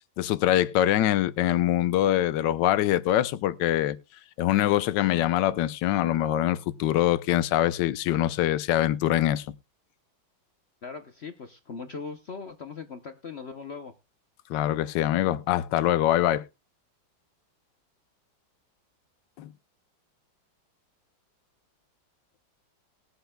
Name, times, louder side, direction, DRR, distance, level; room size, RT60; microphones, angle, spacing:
voice 1, 0.2-4.0 4.4-9.5 14.5-16.4 19.4-19.5, left 13 dB, 70° left, 1.3 m, -24 dB
voice 2, 10.8-13.9, left 5 dB, 55° left, 0.7 m, -39 dB
21.0 x 8.0 x 2.2 m
omnidirectional pair, 2.1 m